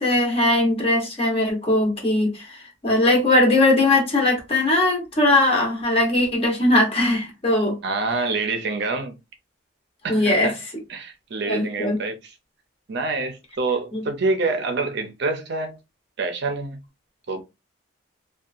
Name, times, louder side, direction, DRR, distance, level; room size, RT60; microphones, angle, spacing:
voice 1, 0.0-7.8 10.1-10.5 11.5-12.0 13.9-14.0, left 1 dB, 30° left, 0.9 m, -20 dB
voice 2, 7.8-9.1 10.0-10.6 10.9-12.3 12.9-15.8 16.2-16.8 17.3-17.4, right 3 dB, 55° right, 0.5 m, -26 dB
2.7 x 2.3 x 2.4 m
head